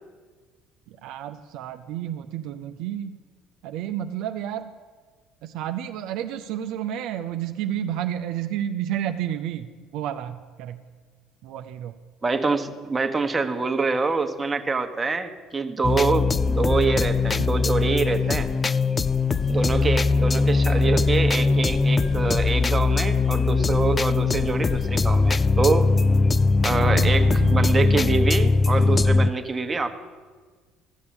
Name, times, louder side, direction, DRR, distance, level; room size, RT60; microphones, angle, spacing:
voice 1, 1.0-3.2 3.6-4.7 5.4-10.8 11.4-11.9 17.4-17.5 19.8-19.9 26.7-27.8, right 11 dB, 70° right, 7 dB, 0.5 m, -31 dB
voice 2, 12.2-18.5 19.5-25.9 26.6-30.0, right 4 dB, 25° right, 6 dB, 1.2 m, -25 dB
sound 1, 15.8-29.3, left 4 dB, 25° left, 0.4 m, -21 dB
14.0 x 6.8 x 8.9 m, 1.5 s
hypercardioid pair, 75°, 0 cm